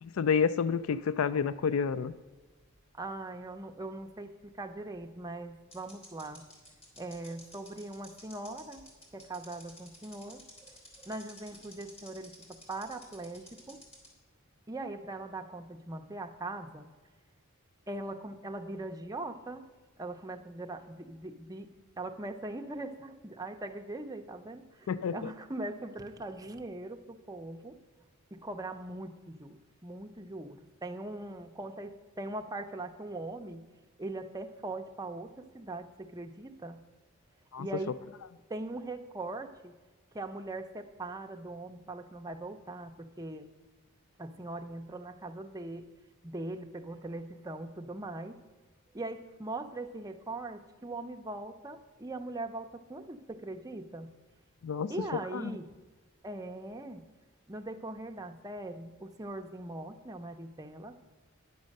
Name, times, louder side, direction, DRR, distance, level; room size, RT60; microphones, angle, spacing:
voice 1, 0.0-2.1 24.9-25.2 37.5-37.7 54.6-54.9 55.3-55.4, left 6 dB, 70° left, 14 dB, 0.4 m, -29 dB
sound 1, 2.3-2.8 3.0-3.1 4.9-5.0 5.7-14.1, left 1 dB, 30° left, 3.2 m, -52 dB
voice 2, 2.9-6.4 7.0-13.8 14.7-16.9 17.9-19.7 20.0-27.8 28.3-33.6 34.0-36.8 37.6-38.0 38.5-39.7 40.1-43.5 44.2-45.9 46.2-48.4 48.9-54.1 54.9-55.8 56.2-57.1 57.5-61.0, right 2 dB, 15° right, 5 dB, 0.7 m, -41 dB
10.5 x 7.3 x 6.5 m, 1.3 s
head